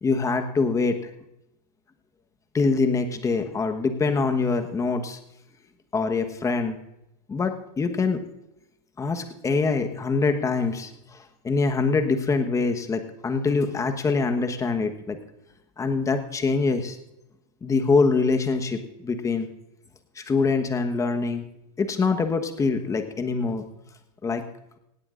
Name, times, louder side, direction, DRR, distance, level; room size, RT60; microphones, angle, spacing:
voice 1, 0.0-1.0 2.5-5.2 5.9-6.8 7.3-8.2 9.0-10.9 11.4-15.2 15.8-17.0 17.6-19.5 20.2-21.4 21.8-23.6 24.2-24.4, left 4 dB, 15° left, 7 dB, 1.2 m, -24 dB
18.0 x 17.0 x 2.5 m, 0.87 s
supercardioid pair, 130°, 21 cm